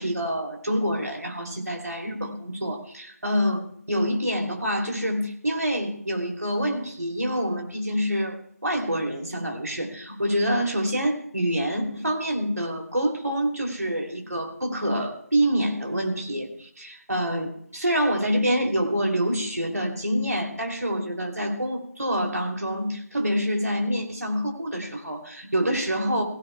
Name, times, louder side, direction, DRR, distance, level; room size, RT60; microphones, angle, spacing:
voice 1, 0.0-8.4 8.6-26.2, equal, 75° right, 2 dB, 2.9 m, -26 dB
22.5 x 16.0 x 2.3 m, 0.68 s
figure-of-eight pair, 165°, 9 cm